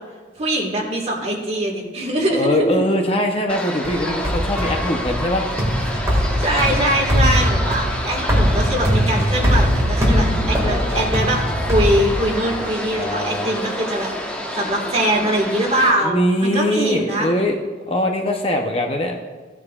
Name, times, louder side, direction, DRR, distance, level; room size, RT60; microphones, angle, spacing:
voice 1, 0.4-2.8 6.1-14.1 14.5-17.3, right 1 dB, 30° right, -1 dB, 1.8 m, -22 dB
voice 2, 2.3-5.5 7.1-7.5 10.6-11.1 12.4-13.5 16.0-17.6 17.9-19.2, left 1 dB, 30° left, 3 dB, 0.8 m, -22 dB
sound 1, 3.5-15.9, equal, 5° left, 1.2 m, -28 dB
sound 2, 3.8-12.6, equal, 15° right, 1.9 m, -21 dB
16.0 x 9.7 x 2.4 m, 1.4 s
head